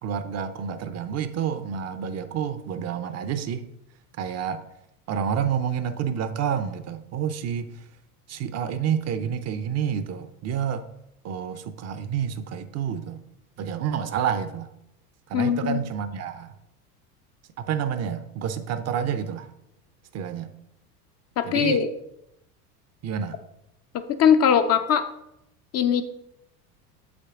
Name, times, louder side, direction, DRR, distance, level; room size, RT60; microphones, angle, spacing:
voice 1, 0.0-3.7 4.2-4.6 5.1-7.8 8.3-10.9 11.2-13.2 13.6-14.7 15.3-16.5 17.6-19.5 20.1-20.5 21.4-21.8 23.0-23.4, right 8 dB, 35° right, 11 dB, 0.6 m, -29 dB
voice 2, 15.3-15.8 21.4-21.9 24.2-25.0 25.7-26.0, left 8 dB, 35° left, 9 dB, 0.5 m, -20 dB
7.3 x 5.9 x 3.7 m, 0.83 s
hypercardioid pair, 80°, 47 cm